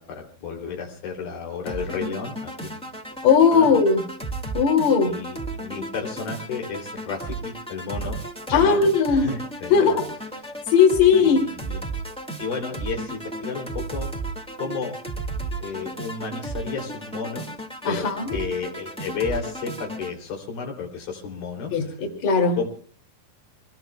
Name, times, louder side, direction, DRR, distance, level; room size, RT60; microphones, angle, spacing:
voice 1, 0.0-2.8 3.5-3.7 5.1-8.2 8.5-8.8 9.1-10.0 11.1-11.8 12.4-14.1 14.6-15.0 15.6-17.5 17.9-22.0 22.6-22.7, left 5 dB, 85° left, 2 dB, 4.9 m, -32 dB
sound 1, 1.7-20.1, right 2 dB, 5° left, 0.7 m, -34 dB
voice 2, 3.2-4.0 4.5-5.1 8.5-9.3 9.7-10.1 10.7-11.4 17.8-18.4 21.7-22.6, left 6 dB, 55° left, 2 dB, 3.7 m, -18 dB
26.0 x 20.5 x 2.3 m, 0.42 s
omnidirectional pair, 4.1 m